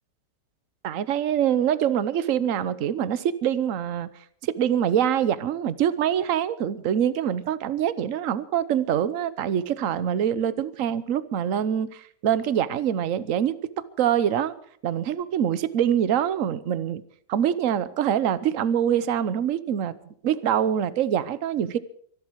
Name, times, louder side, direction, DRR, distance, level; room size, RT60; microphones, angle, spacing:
voice 1, 0.8-4.1 4.4-13.6 14.0-14.5 14.8-17.0 17.3-20.0 20.2-21.8, right 9 dB, 55° right, 15 dB, 1.2 m, -24 dB
24.0 x 12.0 x 4.7 m, 0.62 s
omnidirectional pair, 1.8 m